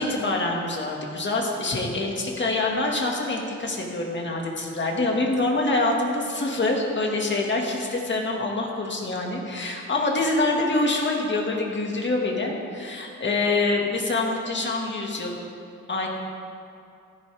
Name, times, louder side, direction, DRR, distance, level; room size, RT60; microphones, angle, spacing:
voice 1, 0.0-15.4 15.9-16.1, left 2 dB, 35° left, -1 dB, 2.0 m, -25 dB
15.0 x 14.5 x 3.5 m, 2.5 s
wide cardioid pair, 125°, 31 cm